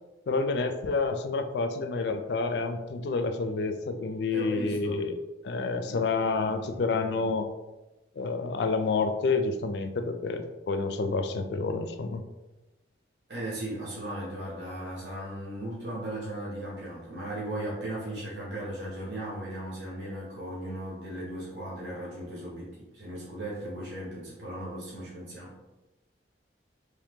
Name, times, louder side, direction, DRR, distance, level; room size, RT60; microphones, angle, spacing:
voice 1, 0.3-5.1 5.4-7.5 8.2-12.2, left 4 dB, 60° left, 8 dB, 0.3 m, -29 dB
voice 2, 4.3-5.0 5.7-6.8 13.3-25.6, right 1 dB, 70° right, -6 dB, 1.2 m, -37 dB
3.2 x 2.8 x 3.5 m, 1.1 s
head